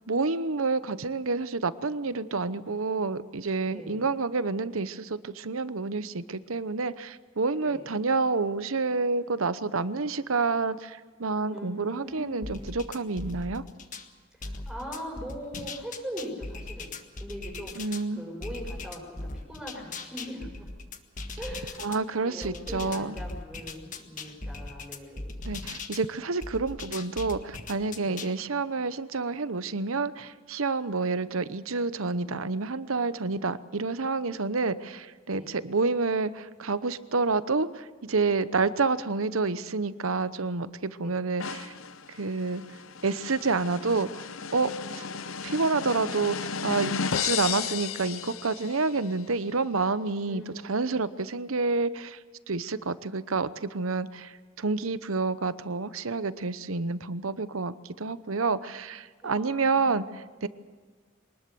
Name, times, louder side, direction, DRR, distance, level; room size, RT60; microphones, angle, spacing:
voice 1, 0.0-13.6 17.8-18.2 21.8-23.2 25.4-41.7 42.1-42.6 43.0-44.2 44.5-44.7 45.0-45.1 45.4-52.2 52.5-60.5, right 4 dB, 75° right, 14 dB, 0.9 m, -29 dB
voice 2, 3.7-4.0 7.6-7.8 11.5-12.8 14.4-20.7 21.4-21.9 22.2-25.4 28.0-28.2 35.3-35.5 41.0-41.2 44.8-45.3 50.2-50.9 59.2-60.1, equal, 5° right, -2 dB, 5.8 m, -41 dB
sound 1, 12.4-14.1 14.4-18.0 18.4-22.0 22.4-26.0 26.4-28.3, left 3 dB, 40° left, 1.6 m, -39 dB
sound 2, 41.4-49.0, left 6 dB, 70° left, 0.7 m, -34 dB
24.0 x 20.0 x 7.0 m, 1.5 s
head